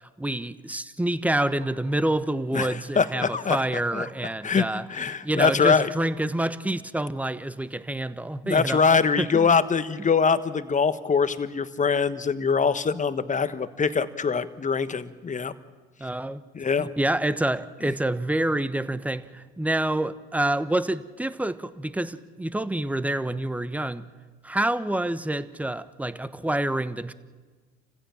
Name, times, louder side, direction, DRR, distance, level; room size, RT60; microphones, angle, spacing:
voice 1, 0.2-4.8 5.2-8.8 9.2-9.5 16.0-16.4 16.8-24.0 24.4-27.1, right 1 dB, 5° right, 1.0 m, -27 dB
voice 2, 2.5-3.6 3.9-4.1 4.4-5.9 8.4-15.5 16.5-16.9, left 5 dB, 25° left, 1.3 m, -23 dB
29.0 x 15.5 x 7.4 m
hypercardioid pair, 70°, 30 cm